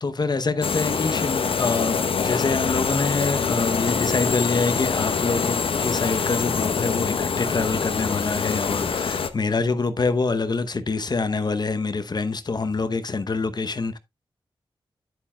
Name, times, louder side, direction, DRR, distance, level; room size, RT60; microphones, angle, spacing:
voice 1, 0.0-14.0, left 4 dB, 50° left, 0.8 m, -25 dB
sound 1, 0.6-9.3, left 5 dB, 80° left, 0.9 m, -25 dB
9.7 x 8.6 x 2.3 m
wide cardioid pair, 70°, 9 cm